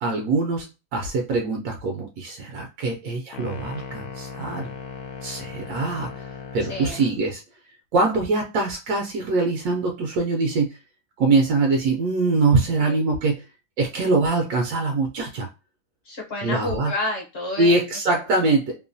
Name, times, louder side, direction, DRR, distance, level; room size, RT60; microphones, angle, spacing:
voice 1, 0.0-4.7 5.2-6.2 6.5-7.4 7.9-10.8 11.2-13.4 13.8-15.5 16.4-16.9 17.6-18.8, right 3 dB, 75° right, 2 dB, 1.1 m, -23 dB
sound 1, 3.3-7.3, left 5 dB, 75° left, 1.1 m, -37 dB
voice 2, 16.1-17.7, left 2 dB, 50° left, -1 dB, 0.9 m, -29 dB
3.0 x 2.1 x 2.5 m, 0.27 s
omnidirectional pair, 1.7 m